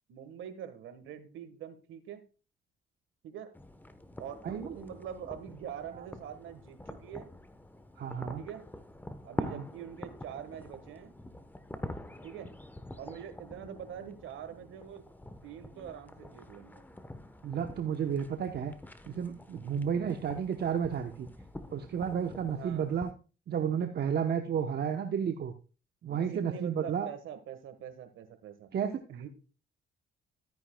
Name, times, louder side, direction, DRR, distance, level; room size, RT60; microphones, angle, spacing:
voice 1, 0.1-2.2 3.2-3.5 4.2-7.3 8.3-8.6 9.2-11.1 12.2-12.5 13.0-15.0 15.4-16.8 19.8-20.2 22.5-22.9 26.1-28.7 29.1-29.3, right 9 dB, 80° right, 9 dB, 1.5 m, -44 dB
sound 1, 3.5-23.1, left 1 dB, 10° left, 1.0 m, -46 dB
voice 2, 4.4-4.8 8.0-8.4 9.4-9.6 17.4-18.7 19.1-21.3 21.7-23.1 23.5-25.5 26.0-27.1 28.7-29.0, right 7 dB, 55° right, 6 dB, 1.0 m, -32 dB
13.0 x 9.4 x 2.3 m, 0.35 s
cardioid pair, 90°, 20 cm